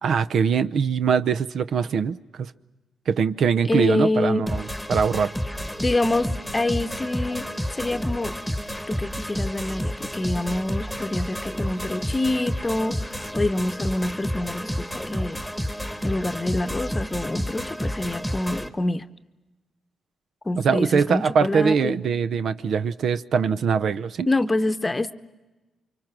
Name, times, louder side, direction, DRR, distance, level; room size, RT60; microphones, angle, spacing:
voice 1, 0.0-2.5 3.1-5.3 20.6-24.3, right 6 dB, 65° right, 13 dB, 0.7 m, -22 dB
voice 2, 3.7-4.5 5.8-8.3 8.9-15.4 16.0-19.1 20.4-21.9 24.3-25.1, left 2 dB, 20° left, 11 dB, 0.9 m, -26 dB
sound 1, 4.5-18.7, equal, ahead, 1.4 m, -30 dB
29.0 x 24.5 x 6.1 m, 1.1 s
cardioid pair, 85°, 0 cm